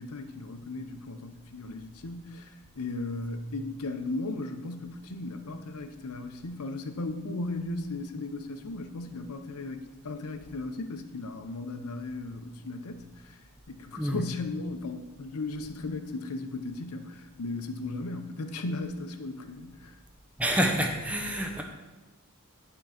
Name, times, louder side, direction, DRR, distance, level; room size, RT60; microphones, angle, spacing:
voice 1, 0.0-13.4 13.7-20.0, left 2 dB, 80° left, 8 dB, 0.7 m, -36 dB
voice 2, 20.4-21.6, equal, 5° right, 2 dB, 0.6 m, -27 dB
9.2 x 3.8 x 5.8 m, 1.1 s
head